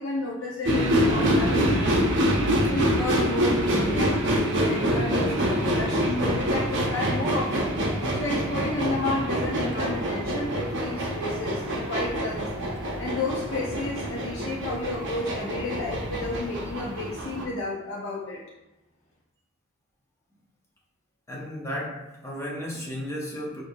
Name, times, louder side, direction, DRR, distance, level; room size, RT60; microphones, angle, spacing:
voice 1, 0.0-2.0 2.7-7.7 8.1-12.5 13.0-18.4, left 2 dB, 60° left, -5 dB, 0.6 m, -31 dB
sound 1, 0.7-17.4, equal, 55° right, 0.6 m, -26 dB
voice 2, 21.3-23.6, equal, 15° left, -3 dB, 0.6 m, -34 dB
5.2 x 2.5 x 2.6 m, 0.96 s
head